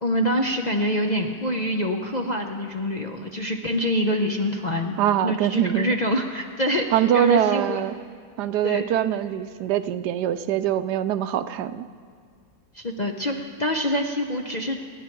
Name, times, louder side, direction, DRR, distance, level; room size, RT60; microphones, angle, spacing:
voice 1, 0.0-7.8 8.6-8.8 12.7-14.8, equal, 40° left, 2 dB, 0.6 m, -26 dB
voice 2, 5.0-6.0 6.9-7.9 8.4-11.9, right 11 dB, 85° right, 12 dB, 1.2 m, -23 dB
29.5 x 10.0 x 4.6 m, 2.1 s
omnidirectional pair, 1.7 m